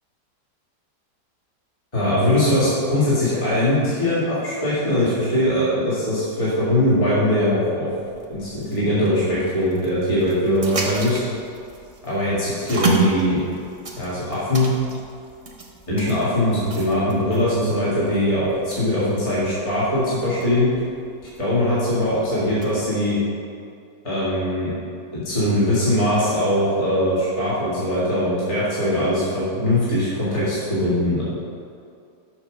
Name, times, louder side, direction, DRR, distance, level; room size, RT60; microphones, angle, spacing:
voice 1, 1.9-7.9 8.3-11.2 12.0-13.4 14.0-14.7 15.9-20.7 21.4-23.2 24.0-24.7 25.1-31.2, left 1 dB, 20° left, -10 dB, 2.0 m, -21 dB
sound 1, 8.0-22.9, right 3 dB, 30° right, 0.6 m, -32 dB
7.1 x 5.4 x 6.3 m, 2.5 s
omnidirectional pair, 1.8 m